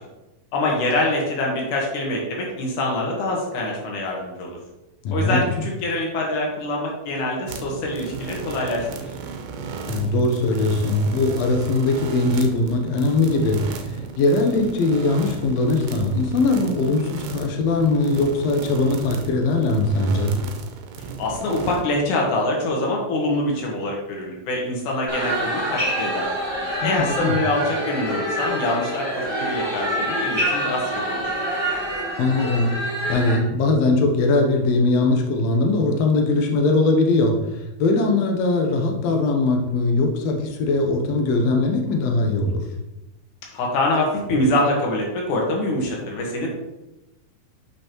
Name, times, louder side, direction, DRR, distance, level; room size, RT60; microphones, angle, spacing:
voice 1, 0.5-4.6 5.1-8.9 21.2-26.3 26.8-31.2 43.5-46.5, left 1 dB, 65° left, -1 dB, 2.7 m, -24 dB
voice 2, 5.0-5.4 9.9-20.4 26.8-27.4 32.2-37.4 37.8-42.6, left 2 dB, 90° left, 2 dB, 1.4 m, -20 dB
sound 1, 7.5-21.8, right 5 dB, 85° right, 2.4 m, -35 dB
sound 2, 25.1-33.3, equal, 10° right, 1.4 m, -26 dB
8.1 x 5.5 x 3.0 m, 0.98 s
omnidirectional pair, 4.2 m